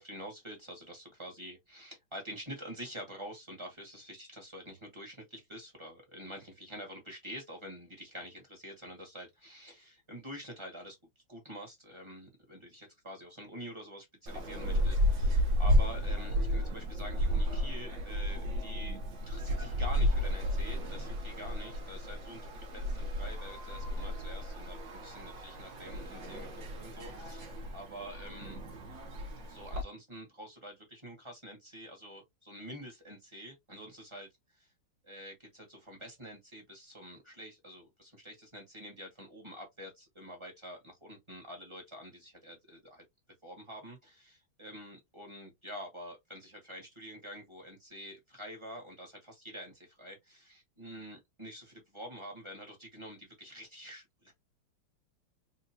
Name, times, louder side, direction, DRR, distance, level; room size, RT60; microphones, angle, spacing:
voice 1, 0.0-11.0 11.3-28.6 29.4-34.3 34.6-34.7 35.0-43.0 43.4-54.3, equal, 15° right, 1.0 m, -47 dB
sound 1, 14.3-29.8, equal, 60° right, 0.7 m, -32 dB
3.7 x 2.9 x 2.8 m
omnidirectional pair, 2.4 m